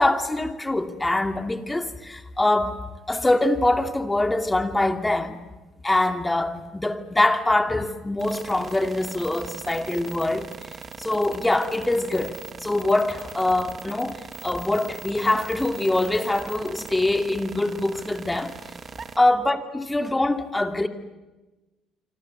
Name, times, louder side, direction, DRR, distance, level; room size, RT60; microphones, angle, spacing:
voice 1, 0.0-2.8 3.1-5.4 5.8-10.5 11.0-18.6 19.2-20.9, left 2 dB, 15° left, 2.6 m, -24 dB
sound 1, 8.2-19.2, right 5 dB, 40° right, 1.9 m, -40 dB
26.0 x 26.0 x 7.9 m
supercardioid pair, 80°, 0 cm